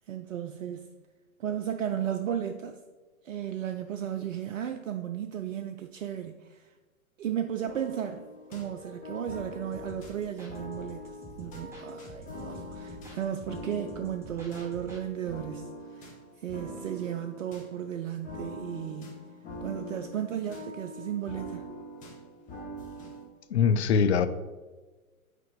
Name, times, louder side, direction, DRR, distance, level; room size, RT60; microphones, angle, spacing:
voice 1, 0.1-0.9 1.4-2.8 3.2-6.8 7.2-19.2 19.6-21.7, right 9 dB, 60° right, 0.5 m, -35 dB
sound 1, 7.6-23.2, left 1 dB, 15° left, 1.2 m, -43 dB
sound 2, 9.7-15.0, right 1 dB, 5° right, 1.0 m, -48 dB
voice 2, 23.5-24.3, left 6 dB, 50° left, 0.5 m, -22 dB
4.9 x 4.5 x 5.1 m
figure-of-eight pair, 115°, 44 cm